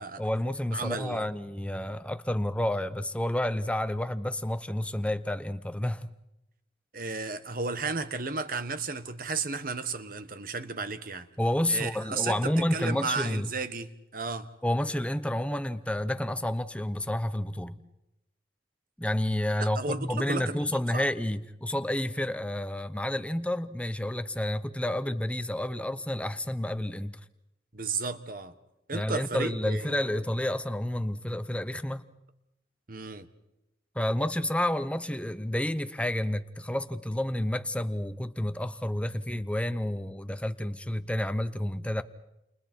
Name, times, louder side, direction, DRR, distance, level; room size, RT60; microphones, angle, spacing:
voice 1, 0.2-6.1 11.4-13.5 14.6-17.8 19.0-27.2 28.9-32.0 33.9-42.0, left 1 dB, 5° left, 0.8 m, -30 dB
voice 2, 0.7-1.3 6.9-11.3 11.7-14.5 19.6-20.6 20.9-21.1 27.7-28.5 28.9-30.1 32.9-33.3, right 4 dB, 50° right, 1.4 m, -33 dB
30.0 x 29.5 x 4.5 m
head